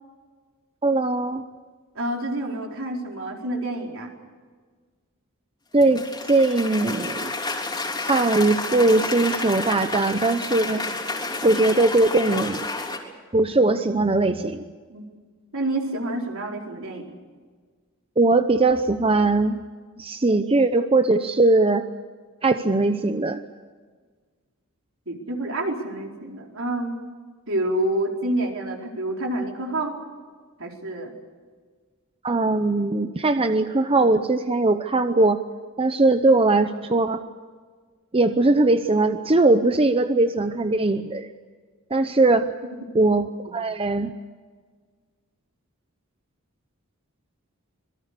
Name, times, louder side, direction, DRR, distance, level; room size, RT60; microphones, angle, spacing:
voice 1, 0.8-1.4 5.7-7.3 8.0-10.8 11.4-12.7 13.3-14.7 18.2-19.6 20.0-21.9 22.4-23.4 32.2-35.4 35.8-37.2 38.1-41.3 41.9-42.5 42.9-44.1, right 2 dB, 25° right, 9 dB, 0.8 m, -20 dB
voice 2, 1.9-4.1 14.9-15.0 15.5-17.1 25.1-27.0 27.5-30.0 30.6-31.1 43.4-43.5, right 1 dB, 65° right, 1 dB, 4.6 m, -28 dB
Cheering / Applause, 5.8-13.0, left 3 dB, 20° left, 3.4 m, -30 dB
26.5 x 22.0 x 6.9 m, 1.5 s
head